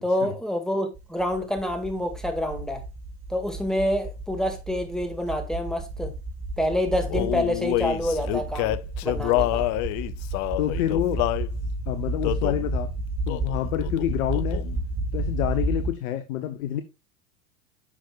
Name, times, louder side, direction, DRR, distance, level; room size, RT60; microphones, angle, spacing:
voice 1, 0.0-2.8 3.3-6.1 6.6-8.7 9.0-9.6, left 1 dB, ahead, 1.9 m, -27 dB
sound 1, 0.9-15.9, right 2 dB, 30° right, 2.1 m, -32 dB
Male singing, 7.1-11.5 12.2-12.7 13.3-13.6 13.8-14.8, left 18 dB, 40° left, 0.5 m, -27 dB
voice 2, 10.6-11.2 11.9-12.9 13.3-14.6 15.1-16.8, left 11 dB, 65° left, 0.9 m, -27 dB
10.0 x 5.9 x 2.3 m
figure-of-eight pair, 80°, 46 cm